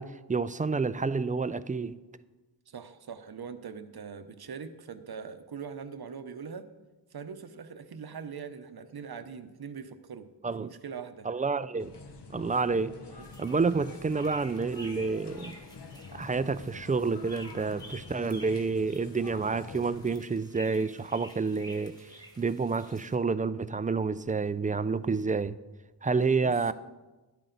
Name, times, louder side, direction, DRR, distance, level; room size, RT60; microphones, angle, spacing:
voice 1, 0.0-2.0 10.4-10.7 11.3-11.9 12.3-13.0 13.4-15.6 16.1-21.9 22.4-25.6 26.0-26.7, right 4 dB, 20° right, 0.3 m, -29 dB
voice 2, 2.7-6.7 7.1-10.3 10.6-11.3 13.1-13.3 26.4-26.6, right 6 dB, 60° right, 0.8 m, -42 dB
sound 1, 11.8-20.2, left 4 dB, 75° left, 1.1 m, -47 dB
sound 2, 13.2-23.1, equal, 10° left, 1.6 m, -51 dB
12.0 x 11.0 x 3.9 m
wide cardioid pair, 85°, 42 cm